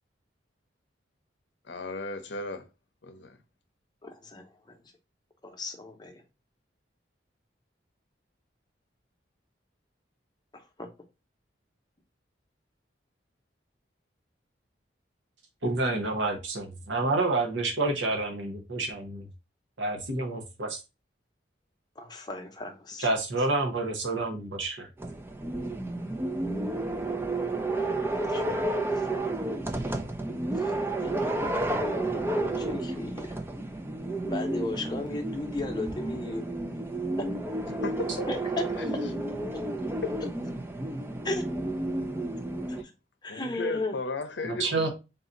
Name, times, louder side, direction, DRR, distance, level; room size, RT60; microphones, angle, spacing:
voice 1, 1.7-2.7 3.0-3.4 37.7-38.3 38.8-39.1 40.0-40.3 43.3-44.9, left 2 dB, 70° left, 0.7 m, -35 dB
voice 2, 4.0-4.7 5.4-6.2 10.8-10.9 22.0-23.1 27.7-28.7 29.1-29.6 30.6-33.4 34.3-36.4 37.2-37.3 38.3-38.6 41.2-41.4 42.7-42.8 43.2-43.9, left 2 dB, 25° left, 0.8 m, -36 dB
voice 3, 15.6-19.3 19.8-20.8 23.0-24.9 44.4-44.9, right 2 dB, 80° right, 1.0 m, -29 dB
sound 1, 25.0-42.8, right 2 dB, 10° right, 0.4 m, -31 dB
3.9 x 2.7 x 3.8 m
head